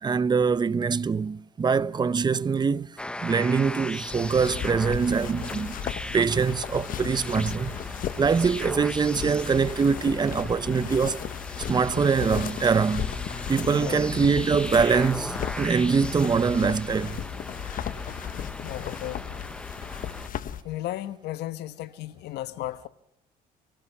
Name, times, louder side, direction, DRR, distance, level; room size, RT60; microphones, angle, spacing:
voice 1, 0.0-5.8 6.1-7.8 8.2-11.2 11.7-13.1 13.5-17.2, right 5 dB, 25° right, 0.7 m, -24 dB
sound 1, 3.0-20.3, left 1 dB, 5° left, 0.9 m, -38 dB
sound 2, 4.1-20.6, left 9 dB, 55° left, 1.3 m, -35 dB
voice 2, 13.7-14.0 18.6-19.4 20.0-20.1 20.6-22.9, left 14 dB, 80° left, 1.3 m, -35 dB
30.0 x 18.0 x 6.0 m
cardioid pair, 110°, 17 cm